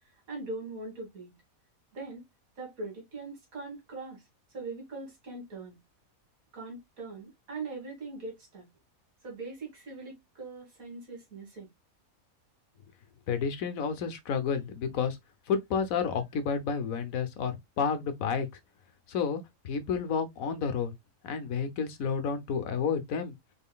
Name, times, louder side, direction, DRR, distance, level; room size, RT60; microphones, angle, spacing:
voice 1, 0.3-1.3 1.9-2.2 2.6-4.2 4.5-5.8 6.5-8.7 9.2-11.7, right 3 dB, 70° right, 2.3 m, -41 dB
voice 2, 13.3-15.2 15.5-18.5 19.1-20.9 21.2-23.3, left 6 dB, 75° left, 1.2 m, -30 dB
4.1 x 3.7 x 2.2 m
omnidirectional pair, 1.5 m